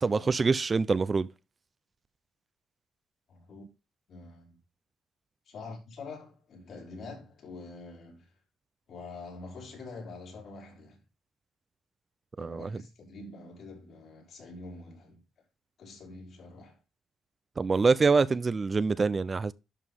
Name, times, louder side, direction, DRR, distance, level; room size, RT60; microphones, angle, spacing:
voice 1, 0.0-1.3 12.4-12.7 17.6-19.5, right 4 dB, 30° right, 0.6 m, -25 dB
voice 2, 3.3-3.6 4.1-4.6 5.5-8.3 8.9-11.0 12.4-15.2 15.8-16.8, left 3 dB, 65° left, 5.4 m, -45 dB
11.0 x 5.6 x 3.6 m
cardioid pair, 90°, 0 cm